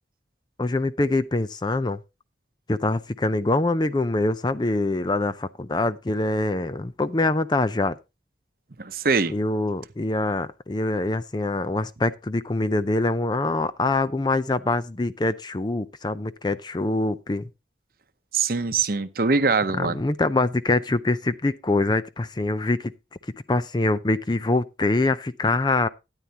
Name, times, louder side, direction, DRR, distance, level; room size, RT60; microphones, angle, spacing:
voice 1, 0.6-2.0 2.7-8.0 9.3-17.5 19.8-22.9 23.5-25.9, left 2 dB, 25° left, 0.5 m, -24 dB
voice 2, 8.8-9.3 18.3-20.0, right 4 dB, 55° right, 0.8 m, -23 dB
13.0 x 9.9 x 2.8 m
head